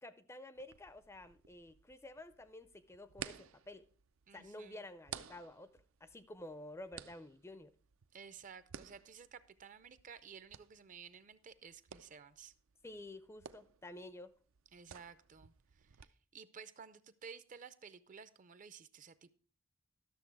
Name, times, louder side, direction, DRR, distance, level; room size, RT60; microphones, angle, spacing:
voice 1, 0.0-3.9 4.3-5.7 6.0-7.7 12.8-14.3, left 1 dB, 15° left, 0.4 m, -51 dB
sound 1, 0.6-16.1, right 8 dB, 85° right, 0.5 m, -55 dB
voice 2, 4.3-4.8 8.1-12.5 14.7-19.3, right 6 dB, 40° right, 0.5 m, -54 dB
12.0 x 6.7 x 4.5 m
head